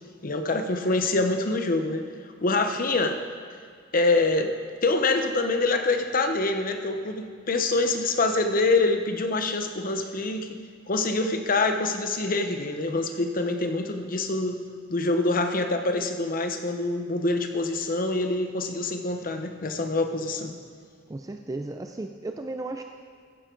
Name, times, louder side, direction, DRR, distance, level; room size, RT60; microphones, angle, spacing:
voice 1, 0.2-2.1 2.4-3.2 3.9-4.5 4.8-10.6 10.9-14.6 14.9-20.6, left 2 dB, 45° left, 6 dB, 0.9 m, -25 dB
voice 2, 21.1-22.8, right 2 dB, 20° right, 5 dB, 0.4 m, -34 dB
15.0 x 9.7 x 3.9 m, 2.1 s
head